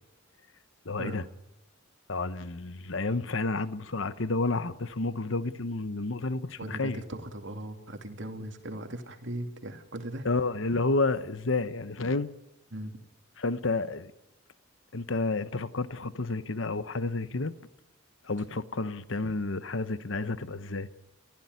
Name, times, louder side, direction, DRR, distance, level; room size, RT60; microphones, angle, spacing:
voice 1, 0.8-1.2 2.1-7.0 10.2-12.3 13.4-14.1 14.9-17.5 18.2-20.9, left 3 dB, 65° left, 1.0 m, -30 dB
voice 2, 6.6-10.3 12.7-12.9, right 1 dB, 60° right, 2.8 m, -38 dB
30.0 x 15.5 x 9.6 m
head